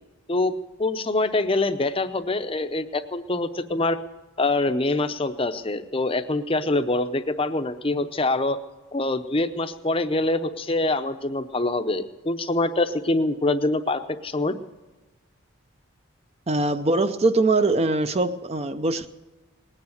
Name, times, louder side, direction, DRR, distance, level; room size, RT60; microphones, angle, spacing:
voice 1, 0.3-4.0 4.4-8.6 8.9-14.5, left 2 dB, 25° left, 0.6 m, -25 dB
voice 2, 16.5-19.1, right 2 dB, 30° right, 0.5 m, -22 dB
19.5 x 9.8 x 6.4 m
head